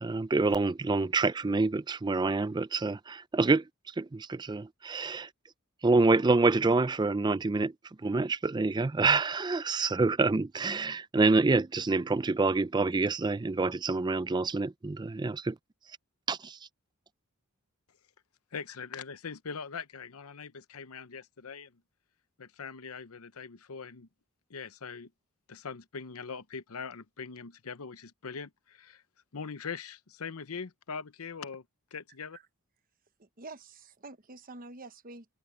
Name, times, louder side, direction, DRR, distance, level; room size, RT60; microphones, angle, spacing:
voice 1, 0.0-5.3 5.8-7.7 8.0-15.6 16.3-16.6, right 3 dB, 20° right, 0.4 m, -27 dB
voice 2, 18.5-21.7 22.4-24.1 24.5-25.1 25.5-29.0 29.3-31.6 31.9-32.4, left 5 dB, 80° left, 0.8 m, -41 dB
voice 3, 33.2-35.3, right 3 dB, 40° right, 1.1 m, -47 dB
head